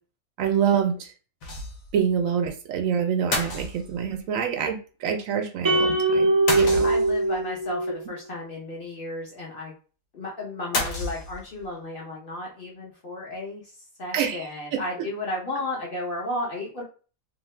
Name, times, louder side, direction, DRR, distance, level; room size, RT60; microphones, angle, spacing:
voice 1, 0.4-1.1 1.9-6.9 14.1-14.8, right 7 dB, 75° right, 5 dB, 0.9 m, -26 dB
sound 1, 1.4-2.0 2.3-2.4 3.3-4.2 6.5-7.3 10.7-11.7, left 2 dB, 70° left, 1.2 m, -30 dB
sound 2, 5.6-8.1, right 2 dB, 35° right, 0.4 m, -22 dB
voice 2, 6.8-9.7 10.1-13.6 14.0-16.8, left 1 dB, 50° left, -2 dB, 0.8 m, -33 dB
2.8 x 2.2 x 3.2 m, 0.37 s
omnidirectional pair, 1.5 m